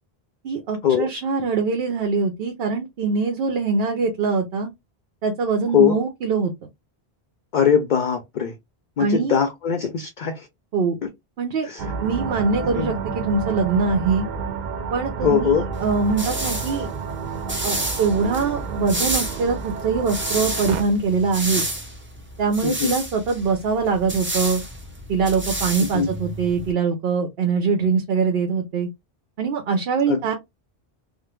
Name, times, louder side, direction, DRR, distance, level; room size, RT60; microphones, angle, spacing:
voice 1, 0.4-4.7 5.2-6.5 9.0-9.4 10.7-11.0 11.4-14.3 14.9-16.9 17.6-21.7 22.4-24.6 25.1-28.9 29.4-30.3, right 4 dB, 75° right, 0.9 m, -23 dB
voice 2, 7.5-8.5 9.0-10.5 11.0-11.1 11.6-11.9 12.8-12.9 15.2-15.7 22.6-22.9 25.8-26.1 30.1-30.3, left 7 dB, 60° left, 0.6 m, -21 dB
sound 1, 11.8-20.8, right 5 dB, 55° right, 0.6 m, -30 dB
sound 2, 15.8-26.7, right 1 dB, 15° right, 0.6 m, -30 dB
3.4 x 2.0 x 3.0 m
omnidirectional pair, 1.0 m